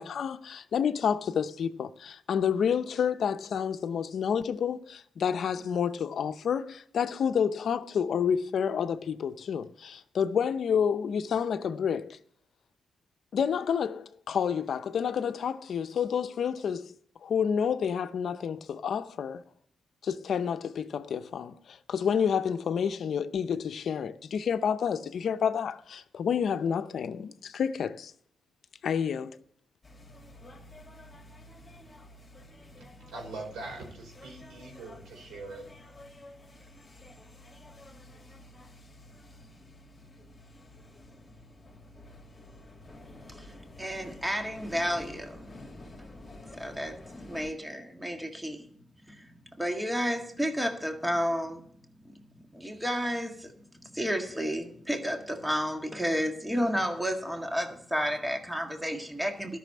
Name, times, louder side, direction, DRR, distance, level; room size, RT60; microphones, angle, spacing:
voice 1, 0.0-12.2 13.3-16.9 17.2-19.4 20.0-28.1 28.8-29.4, left 7 dB, 70° left, 0.7 m, -29 dB
sound 1, 29.8-47.5, left 1 dB, 25° left, 2.5 m, -50 dB
voice 2, 32.8-35.6, right 2 dB, 85° right, 4.9 m, -42 dB
voice 3, 43.8-45.5 46.5-47.0 47.3-48.7 49.1-51.6 52.0-52.2 52.5-53.5 53.8-59.6, equal, 5° right, 1.7 m, -31 dB
12.5 x 6.2 x 8.5 m
cardioid pair, 85°, 0 cm